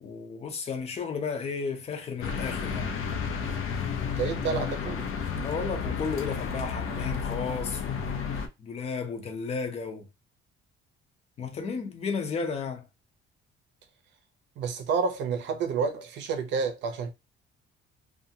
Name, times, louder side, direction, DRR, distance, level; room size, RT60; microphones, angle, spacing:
voice 1, 0.0-3.0 5.3-8.2 8.6-10.1 11.4-12.9, left 5 dB, 30° left, 0.6 m, -33 dB
sound 1, 2.2-8.5, left 6 dB, 90° left, 0.6 m, -32 dB
voice 2, 4.1-5.1 14.6-17.1, right 5 dB, 60° right, 0.6 m, -29 dB
2.7 x 2.4 x 2.7 m
cardioid pair, 175°, 20 cm